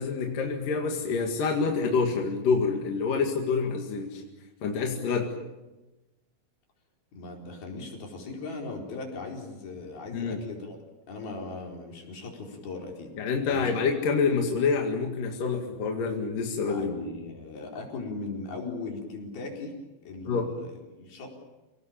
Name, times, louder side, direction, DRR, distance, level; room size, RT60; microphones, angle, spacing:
voice 1, 0.0-4.2 4.6-5.3 10.1-10.4 13.2-16.9 20.3-20.5, left 5 dB, 65° left, 2 dB, 3.6 m, -27 dB
voice 2, 7.1-10.8 11.1-13.1 13.5-13.7 16.7-19.8 20.0-21.3, left 3 dB, 80° left, 1 dB, 6.4 m, -38 dB
29.5 x 18.5 x 8.9 m, 1.1 s
omnidirectional pair, 4.3 m